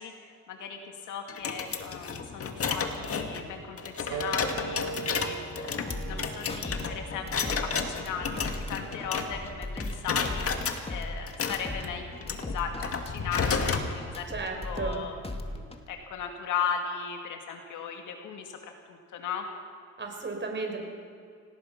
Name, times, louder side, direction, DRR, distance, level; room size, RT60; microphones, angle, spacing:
voice 1, 0.0-5.4 6.0-14.3 14.6-15.1 15.5-19.5, left 6 dB, 85° left, 4 dB, 2.2 m, -37 dB
sound 1, 1.3-9.5 9.8-10.8 11.3-13.9, left 5 dB, 50° left, 2.1 m, -32 dB
Wind instrument woodwind instrument, 4.1-9.2, right 5 dB, 85° right, 2.6 m, -41 dB
sound 2, 5.9-6.8 7.1-10.0 10.2-11.8 12.1-15.0 15.2-15.9, left 2 dB, 20° left, 2.2 m, -37 dB
voice 2, 14.3-15.1 20.0-20.9, right 3 dB, 40° right, 3 dB, 5.0 m, -34 dB
26.5 x 18.5 x 5.9 m, 2.3 s
cardioid pair, 90°, 30 cm